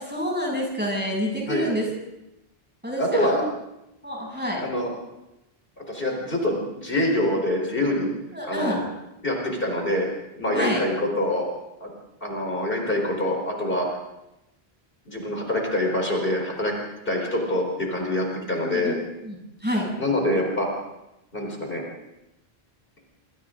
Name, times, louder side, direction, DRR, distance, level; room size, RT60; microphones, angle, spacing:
voice 1, 0.0-1.9 2.8-3.4 4.0-4.6 8.3-8.8 10.5-10.8 18.6-19.9, equal, 10° right, -2 dB, 7.7 m, -28 dB
voice 2, 3.0-3.4 4.6-4.9 5.9-8.1 8.4-8.8 9.2-10.1 10.4-11.5 11.8-11.9 12.2-13.9 15.1-16.7 17.0-19.0 20.0-20.7 21.3-21.8, left 1 dB, 60° left, 0 dB, 4.6 m, -25 dB
26.5 x 26.0 x 3.9 m, 0.92 s
omnidirectional pair, 1.1 m